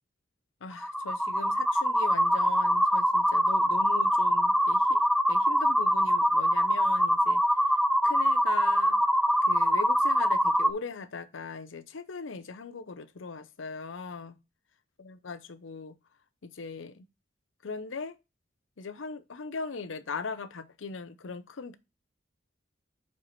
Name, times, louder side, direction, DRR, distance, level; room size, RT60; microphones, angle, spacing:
voice 1, 0.6-5.0 5.3-7.4 8.0-9.0 9.5-14.4 15.0-15.9 16.4-17.1 17.6-18.2 18.8-21.8, left 4 dB, 85° left, 0.7 m, -39 dB
sound 1, 0.7-10.7, equal, ahead, 0.3 m, -24 dB
5.0 x 4.7 x 5.7 m
head